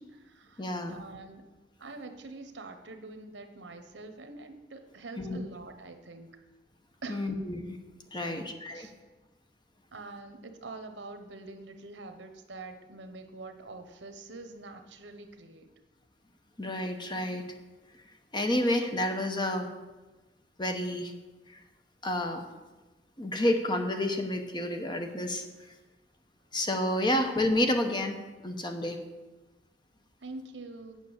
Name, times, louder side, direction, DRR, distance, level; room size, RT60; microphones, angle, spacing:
voice 1, 0.0-1.4 1.8-6.3 7.0-7.3 8.2-8.9 9.9-15.7 30.2-31.0, right 3 dB, 80° right, 7 dB, 1.0 m, -45 dB
voice 2, 0.6-1.0 5.2-5.4 7.1-7.8 8.1-8.9 16.6-17.4 18.3-19.7 20.6-21.1 21.5-21.6 22.0-22.4 23.2-25.4 26.5-28.2 28.4-29.0, left 1 dB, 25° left, 5 dB, 0.9 m, -29 dB
9.1 x 6.1 x 7.2 m, 1.2 s
head